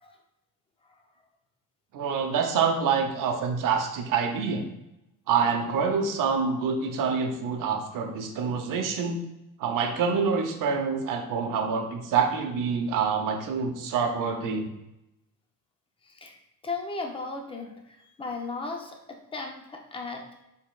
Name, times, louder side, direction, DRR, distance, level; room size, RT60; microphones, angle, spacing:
voice 1, 1.9-4.7 5.3-9.2 9.6-14.7, right 5 dB, 65° right, 5 dB, 0.8 m, -26 dB
voice 2, 16.0-16.4 16.6-20.4, left 3 dB, 15° left, 2 dB, 0.5 m, -36 dB
6.1 x 3.6 x 2.3 m, 0.88 s
cardioid pair, 155°, 35 cm